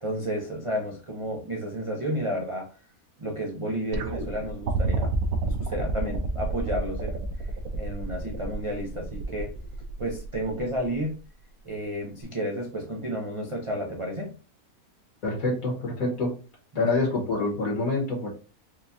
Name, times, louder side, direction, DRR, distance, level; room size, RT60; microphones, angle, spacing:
voice 1, 0.0-2.7 3.2-5.1 5.4-9.5 10.0-11.2 11.6-14.3 16.7-16.9, equal, 55° right, 0 dB, 0.3 m, -32 dB
sound 1, 3.9-11.1 12.2-12.3, right 4 dB, 75° right, 1.0 m, -32 dB
voice 2, 15.2-16.4 16.8-18.3, left 3 dB, 70° left, -2 dB, 1.7 m, -26 dB
4.9 x 2.3 x 2.7 m, 0.36 s
omnidirectional pair, 1.6 m